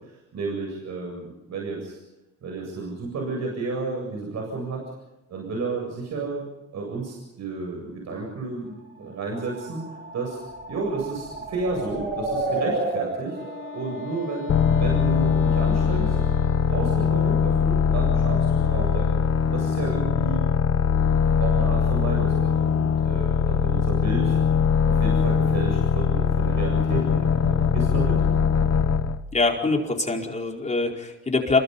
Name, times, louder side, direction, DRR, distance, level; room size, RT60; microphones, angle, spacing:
voice 1, 0.0-2.0 2.4-4.8 5.3-6.5 6.7-9.8 10.1-10.4 10.7-13.4 13.7-16.2 16.7-19.2 19.5-20.4 21.4-24.4 24.8-28.2, right 3 dB, 65° right, 0 dB, 7.8 m, -32 dB
sound 1, 9.3-15.1, right 2 dB, 35° right, 6.4 m, -32 dB
Wind instrument woodwind instrument, 13.1-17.8, left 3 dB, 40° left, 3.4 m, -39 dB
sound 2, 14.5-29.2, left 6 dB, 60° left, 1.5 m, -21 dB
voice 2, 29.3-31.6, left 3 dB, 25° left, 1 dB, 4.7 m, -24 dB
28.5 x 23.0 x 5.6 m, 0.96 s
cardioid pair, 90°, 30 cm